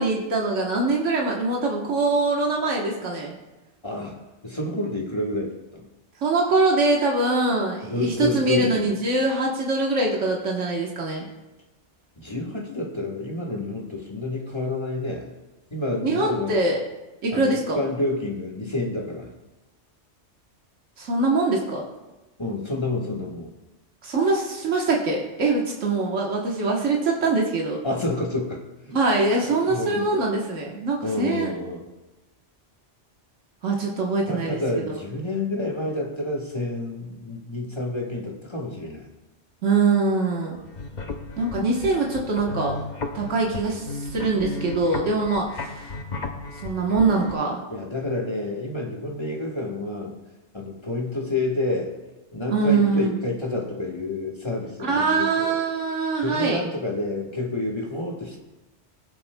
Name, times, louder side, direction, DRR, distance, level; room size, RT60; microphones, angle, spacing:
voice 1, 0.0-3.3 6.2-11.3 16.0-16.8 17.2-17.8 21.0-21.8 24.0-27.8 28.9-31.5 33.6-34.6 34.9-35.0 39.6-40.6 41.4-42.8 43.1-45.9 46.6-47.6 52.5-53.2 54.8-56.6, right 3 dB, 90° right, -2 dB, 1.5 m, -23 dB
voice 2, 3.8-5.8 7.8-8.9 12.2-15.3 15.7-16.6 17.3-19.3 22.4-23.5 27.8-29.0 29.7-30.1 31.0-31.8 34.2-39.0 40.5-40.6 40.9-41.1 47.7-50.2 50.5-51.9 52.3-55.6 56.2-58.4, left 2 dB, 25° left, -1 dB, 1.3 m, -29 dB
sound 1, 40.6-47.3, left 3 dB, 40° left, 0.9 m, -34 dB
20.0 x 7.1 x 2.2 m, 1.1 s
omnidirectional pair, 1.2 m